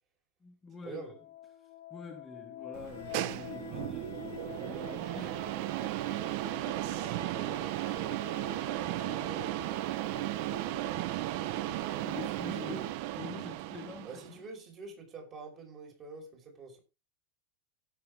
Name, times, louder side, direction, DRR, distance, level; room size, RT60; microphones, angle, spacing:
voice 1, 0.4-1.2 1.6-5.4 6.7-6.8 11.7-12.8 13.2-14.4, left 5 dB, 10° left, 1.6 m, -46 dB
sound 1, 0.9-13.9, left 11 dB, 90° left, 1.7 m, -48 dB
sound 2, 2.7-14.4, right 16 dB, 50° right, 0.7 m, -35 dB
voice 2, 6.9-9.5 12.7-12.9 14.0-16.8, right 4 dB, 25° right, 4.8 m, -46 dB
16.5 x 6.8 x 3.6 m
supercardioid pair, 165°, 0 cm